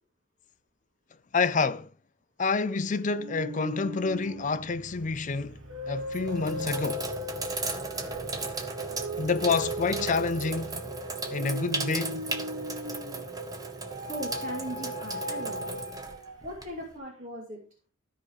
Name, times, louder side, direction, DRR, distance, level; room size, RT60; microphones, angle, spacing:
voice 1, 1.3-1.9 2.4-7.1 9.2-10.8 11.3-12.2, left 4 dB, 35° left, 0.5 m, -28 dB
sound 1, 3.2-13.4 13.9-16.6, left 1 dB, 70° right, 2.0 m, -39 dB
Sink (filling or washing), 5.0-5.4 6.0-16.9, right 3 dB, 15° right, 1.0 m, -36 dB
voice 2, 14.0-15.8 16.4-17.6, right 1 dB, 35° right, 2.7 m, -39 dB
13.5 x 5.0 x 4.7 m
head